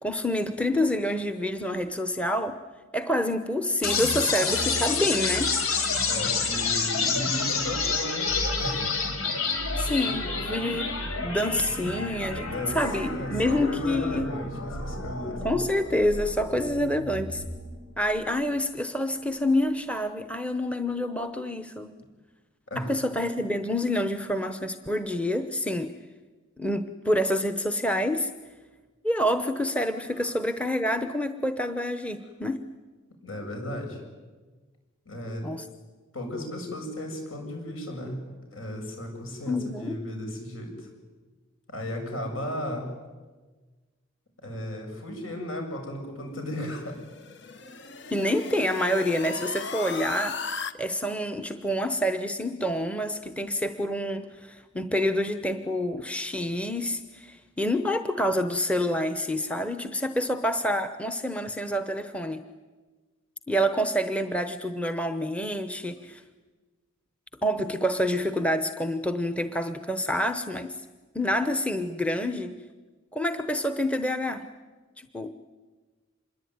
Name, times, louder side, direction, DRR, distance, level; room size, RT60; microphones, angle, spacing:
voice 1, 0.0-2.6 2.9-5.5 9.8-14.3 15.3-17.4 18.0-21.9 22.8-26.0 26.6-28.3 29.0-32.6 35.4-35.7 39.5-40.0 48.1-50.4 50.7-62.5 63.5-66.2 67.4-70.8 71.1-72.6 73.1-74.5 75.0-75.3, left 1 dB, 5° left, 9 dB, 0.9 m, -27 dB
sound 1, 3.8-17.8, left 4 dB, 85° left, 5.1 m, -29 dB
voice 2, 6.1-8.3 8.6-8.8 12.4-15.6 22.7-22.9 33.2-34.0 35.1-35.5 36.1-38.2 38.5-40.9 41.7-42.9 44.4-47.0, left 1 dB, 70° left, 3 dB, 7.5 m, -35 dB
sound 2, 46.8-50.7, left 5 dB, 55° left, 1.3 m, -37 dB
26.0 x 22.0 x 9.5 m, 1.3 s
head